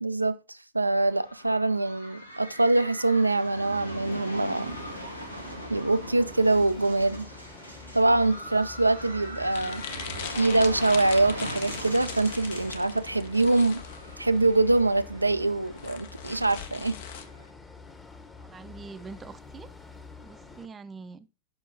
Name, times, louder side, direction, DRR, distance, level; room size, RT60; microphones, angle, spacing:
voice 1, 0.0-4.8 5.7-7.3 7.9-9.8 10.3-13.8 14.2-17.0, right 2 dB, 85° right, 0.4 m, -24 dB
sound 1, 0.9-17.5, equal, 90° left, 1.4 m, -40 dB
sound 2, 4.7-20.7, left 4 dB, 10° left, 1.1 m, -47 dB
sound 3, 9.5-17.2, left 8 dB, 55° left, 1.0 m, -41 dB
voice 2, 18.4-19.7 20.2-21.3, right 4 dB, 20° right, 0.6 m, -44 dB
7.7 x 6.1 x 3.8 m
figure-of-eight pair, 90°, 0 cm